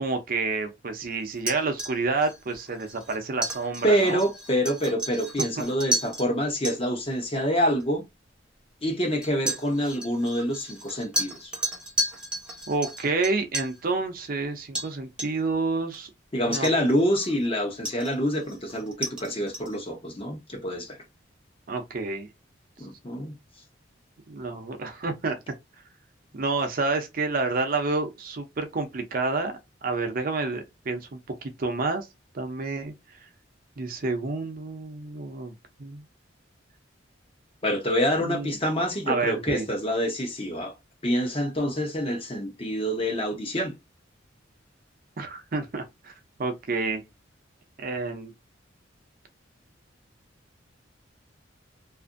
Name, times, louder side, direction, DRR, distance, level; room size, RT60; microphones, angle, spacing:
voice 1, 0.0-4.2 5.6-5.7 12.7-16.1 16.5-16.7 21.7-22.3 24.3-25.4 26.3-32.1 32.3-32.9 33.8-36.0 38.2-38.6 39.1-39.7 45.2-46.1 46.4-47.0 47.8-48.3, right 3 dB, 50° right, 0.6 m, -29 dB
sound 1, 1.4-6.3 6.6-6.8 7.8-7.9 9.2-13.8 14.7-14.9 15.2-15.5 15.9-16.0 16.5-17.4 17.8-19.8, right 1 dB, 5° right, 0.8 m, -33 dB
voice 2, 3.8-8.0 8.8-11.5 16.3-21.0 22.8-23.3 37.6-40.7 41.0-43.7, equal, 30° left, 0.8 m, -26 dB
2.6 x 2.5 x 2.5 m
head